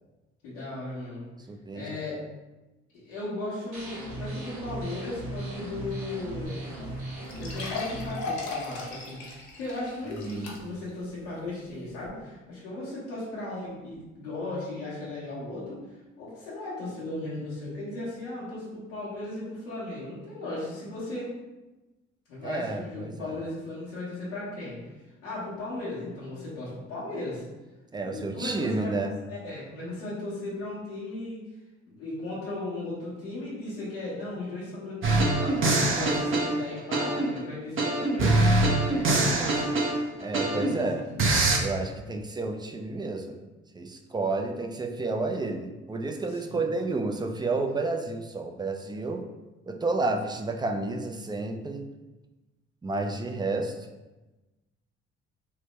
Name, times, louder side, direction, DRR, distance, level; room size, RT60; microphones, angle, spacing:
voice 1, 0.4-1.3 1.7-2.2 2.9-6.6 7.4-15.8 16.2-21.3 22.3-24.8 25.2-27.5 28.0-31.4 31.8-38.5 38.9-39.4 40.3-41.3 46.3-46.6, left 2 dB, 90° left, -9 dB, 1.1 m, -36 dB
voice 2, 1.5-2.0 10.2-10.5 22.4-23.4 27.9-29.1 40.2-41.1 41.6-43.4 43.7-49.2 49.7-51.8 52.8-53.8, right 3 dB, 15° right, 4 dB, 0.4 m, -31 dB
sound 1, 3.7-8.1, right 1 dB, 65° right, 1.1 m, -37 dB
sound 2, 6.4-6.5 6.8-6.9 7.3-10.9 11.4-11.5 12.0-12.1, left 3 dB, 60° left, 0.9 m, -37 dB
sound 3, 35.0-37.4 37.8-40.8 41.2-41.6, right 2 dB, 40° right, 0.7 m, -24 dB
3.4 x 2.1 x 3.1 m, 1.1 s
hypercardioid pair, 50°, 32 cm